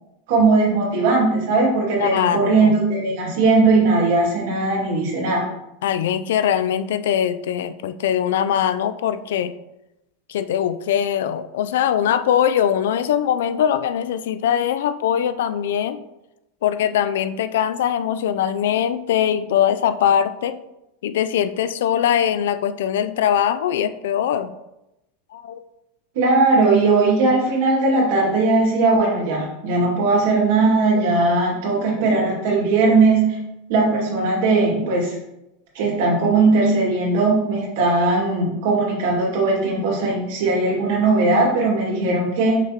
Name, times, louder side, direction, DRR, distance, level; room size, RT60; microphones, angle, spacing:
voice 1, 0.3-5.4 26.1-33.4 33.7-35.2 35.7-42.6, right 3 dB, 60° right, -2 dB, 2.2 m, -18 dB
voice 2, 2.0-2.8 5.8-9.5 10.3-16.0 16.6-20.6 21.0-24.5 25.3-25.6 29.7-29.8 31.8-32.2, left 9 dB, 80° left, 12 dB, 0.4 m, -21 dB
5.9 x 5.8 x 3.0 m, 0.91 s
supercardioid pair, 175°, 0 cm